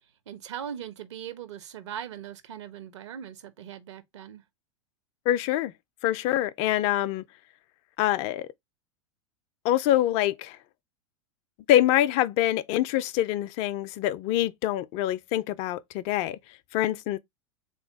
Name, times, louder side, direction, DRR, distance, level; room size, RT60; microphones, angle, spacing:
voice 1, 0.3-4.4, right 9 dB, 60° right, 0.9 m, -40 dB
voice 2, 5.3-5.7 6.0-7.2 8.0-8.5 9.6-10.6 11.7-16.4 16.7-17.2, left 13 dB, 40° left, 0.4 m, -25 dB
3.7 x 2.8 x 3.4 m
figure-of-eight pair, 90°, 17 cm